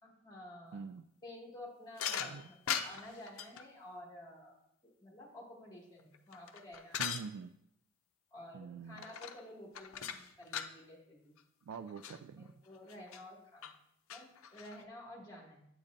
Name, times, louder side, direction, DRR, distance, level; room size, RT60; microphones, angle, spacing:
voice 1, 0.0-0.8 1.2-7.1 8.3-11.3 12.4-13.7 14.1-15.7, left 1 dB, 20° left, -2 dB, 1.9 m, -52 dB
voice 2, 0.7-1.0 2.2-2.5 7.0-7.5 8.5-9.0 11.6-12.5, right 5 dB, 80° right, 10 dB, 0.3 m, -45 dB
sound 1, 2.0-3.6 6.0-7.3 9.0-9.4 9.7-10.7 11.4-11.5 11.7-12.2 12.9-13.2 13.6-13.7 14.1-14.8, left 8 dB, 90° left, 0.5 m, -40 dB
8.5 x 8.4 x 2.6 m, 0.78 s
head